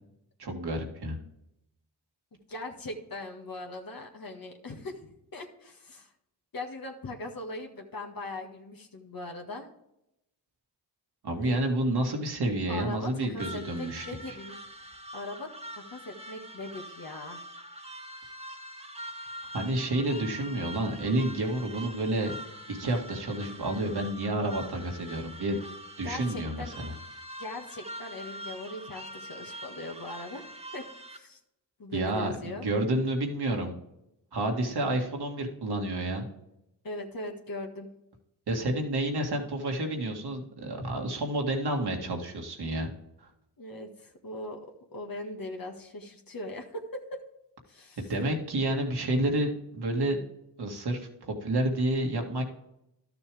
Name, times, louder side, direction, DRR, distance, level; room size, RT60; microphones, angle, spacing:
voice 1, 0.4-1.2 11.2-14.4 19.5-22.3 22.7-25.6 26.0-26.9 31.9-33.7 34.3-36.3 38.5-42.9 43.2-43.3 48.0-50.2 50.6-52.4, right 1 dB, 65° right, 2 dB, 2.1 m, -30 dB
voice 2, 2.5-6.1 6.5-9.7 11.4-11.6 12.7-14.6 15.1-17.4 26.0-26.8 27.4-30.8 31.1-31.4 31.8-32.7 36.8-37.9 43.6-47.2 47.7-48.1, left 2 dB, 55° left, 2 dB, 1.7 m, -40 dB
sound 1, 13.4-31.2, equal, 15° right, 1.4 m, -44 dB
12.0 x 6.9 x 3.5 m, 0.83 s
cardioid pair, 50°, 42 cm